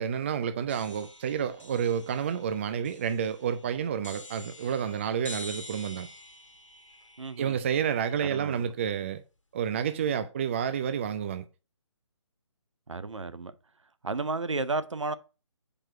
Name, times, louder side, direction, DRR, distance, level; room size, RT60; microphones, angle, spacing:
voice 1, 0.0-6.1 7.4-9.2 9.5-11.5, right 8 dB, 25° right, 0.4 m, -30 dB
sound 1, 0.7-8.6, left 2 dB, 85° left, 1.4 m, -47 dB
voice 2, 7.2-7.6 8.2-8.7 12.9-13.5 14.0-15.1, right 3 dB, 75° right, 0.7 m, -33 dB
4.9 x 4.5 x 5.9 m
figure-of-eight pair, 145°, 16 cm